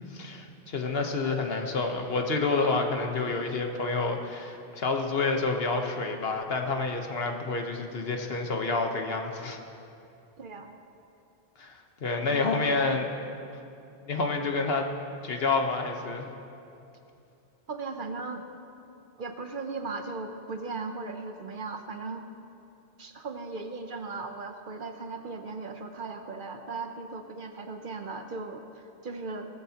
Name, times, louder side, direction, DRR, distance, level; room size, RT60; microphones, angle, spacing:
voice 1, 0.1-9.6 11.6-11.7 12.0-13.1 14.1-14.9 15.2-16.3, left 3 dB, 65° left, 3 dB, 1.3 m, -28 dB
voice 2, 10.4-10.7 12.3-12.8 17.7-18.4 19.2-22.2 23.0-29.5, right 3 dB, 55° right, 6 dB, 0.9 m, -37 dB
18.0 x 14.0 x 2.9 m, 2.7 s
omnidirectional pair, 1.1 m